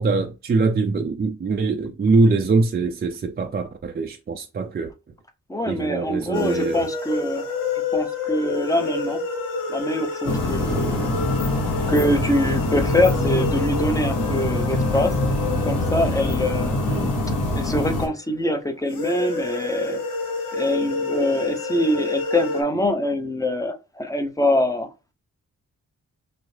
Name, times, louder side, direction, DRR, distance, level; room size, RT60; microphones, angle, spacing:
voice 1, 0.0-4.9 5.7-6.9 16.9-17.2, right 3 dB, 30° right, 0.4 m, -23 dB
voice 2, 5.5-7.5 7.9-9.2 9.7-11.1 11.9-15.1 15.6-16.8 17.6-20.0 20.5-24.9, left 1 dB, 10° left, 0.7 m, -24 dB
sound 1, 6.3-18.1 18.9-22.6, left 4 dB, 85° left, 1.0 m, -29 dB
sound 2, 10.2-18.1, left 1 dB, 70° left, 1.8 m, -24 dB
6.0 x 2.0 x 3.2 m
cardioid pair, 75°, 33 cm